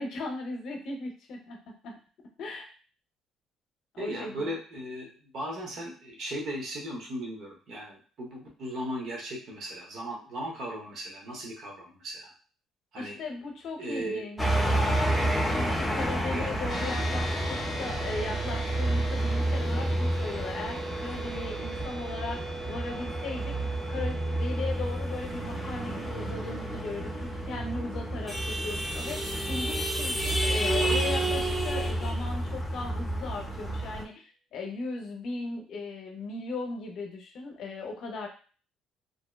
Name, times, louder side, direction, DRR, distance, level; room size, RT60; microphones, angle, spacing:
voice 1, 0.0-1.9 2.4-2.7 3.9-4.5 13.0-14.4 15.5-23.5 23.9-38.3, left 3 dB, 65° left, 2 dB, 0.6 m, -37 dB
voice 2, 4.0-12.3 12.9-13.2 13.8-14.2 16.3-16.5, right 1 dB, 55° right, -1 dB, 0.8 m, -37 dB
sound 1, 14.4-34.0, right 1 dB, 5° left, 0.5 m, -30 dB
sound 2, 16.7-30.3, right 3 dB, 10° right, 1.1 m, -41 dB
2.6 x 2.1 x 2.2 m, 0.39 s
cardioid pair, 115°, 0 cm